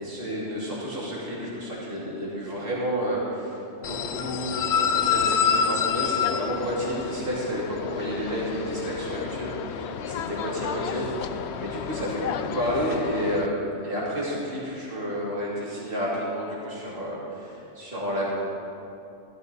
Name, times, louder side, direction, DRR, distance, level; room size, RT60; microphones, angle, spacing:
voice 1, 0.0-3.6 3.9-18.3, equal, 50° right, -7 dB, 3.1 m, -30 dB
sound 1, 3.8-13.5, left 7 dB, 70° left, 0.8 m, -28 dB
14.5 x 12.0 x 4.1 m, 2.8 s
omnidirectional pair, 1.2 m